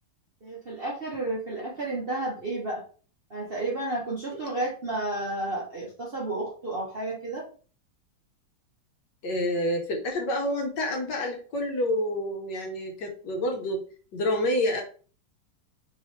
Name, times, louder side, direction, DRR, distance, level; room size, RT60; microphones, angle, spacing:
voice 1, 0.4-2.8 3.3-7.4, right 2 dB, 40° right, -4 dB, 0.9 m, -31 dB
voice 2, 9.2-13.8 14.1-14.8, left 1 dB, 65° left, 1 dB, 1.5 m, -28 dB
4.6 x 3.1 x 3.1 m, 0.40 s
omnidirectional pair, 2.2 m